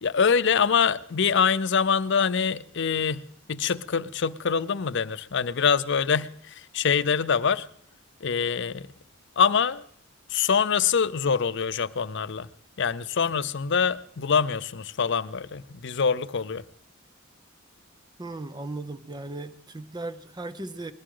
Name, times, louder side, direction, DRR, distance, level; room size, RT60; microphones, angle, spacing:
voice 1, 0.0-7.7 8.2-8.8 9.4-9.8 10.3-12.5 12.8-16.6, left 6 dB, 65° left, 0.6 m, -24 dB
voice 2, 18.2-20.9, right 2 dB, 20° right, 0.8 m, -37 dB
20.5 x 16.5 x 3.8 m
head